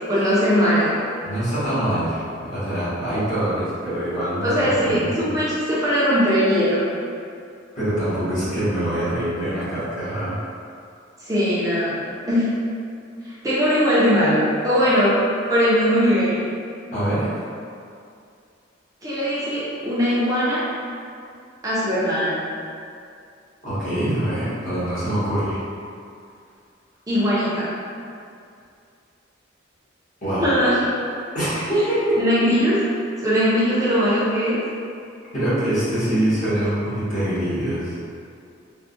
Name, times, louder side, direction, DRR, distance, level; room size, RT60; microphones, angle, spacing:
voice 1, 0.1-1.0 4.4-6.8 11.2-12.5 13.2-15.2 15.5-16.5 19.0-20.7 21.6-22.4 27.1-27.7 30.4-30.9 32.2-32.8 33.2-34.6, equal, 20° right, -10 dB, 0.5 m, -20 dB
voice 2, 1.2-5.3 7.7-10.4 16.9-17.3 23.6-25.6 30.2-30.5 31.3-32.2 35.3-37.9, right 1 dB, 40° left, -13 dB, 1.3 m, -24 dB
3.5 x 2.1 x 2.4 m, 2.4 s
head